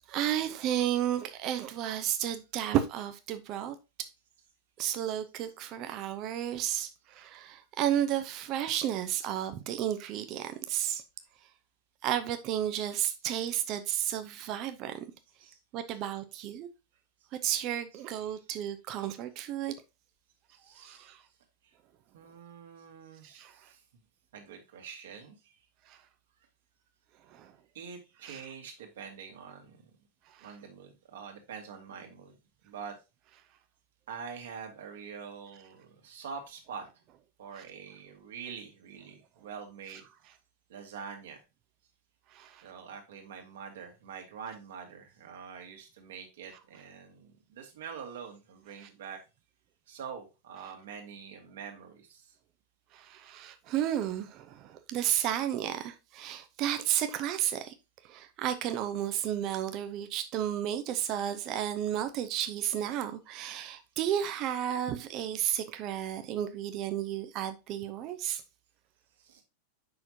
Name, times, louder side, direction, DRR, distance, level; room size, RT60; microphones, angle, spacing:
voice 1, 0.1-3.7 4.8-11.0 12.0-15.0 15.7-16.7 17.4-19.7 20.8-21.2 23.3-23.7 25.9-26.0 27.3-27.5 28.3-28.4 30.3-30.5 37.6-37.7 42.3-42.6 48.8-48.9 52.9-57.7 58.0-68.4, right 11 dB, 40° right, 0.9 m, -32 dB
voice 2, 17.9-18.4 19.0-19.1 20.6-21.1 22.1-23.8 24.3-25.6 27.7-29.8 30.4-32.4 32.6-33.0 34.1-36.9 37.4-40.1 40.7-41.4 42.6-49.2 49.9-52.3 69.2-69.4, right 6 dB, 60° right, 2.1 m, -45 dB
7.8 x 6.0 x 2.8 m
figure-of-eight pair, 90°, 0 cm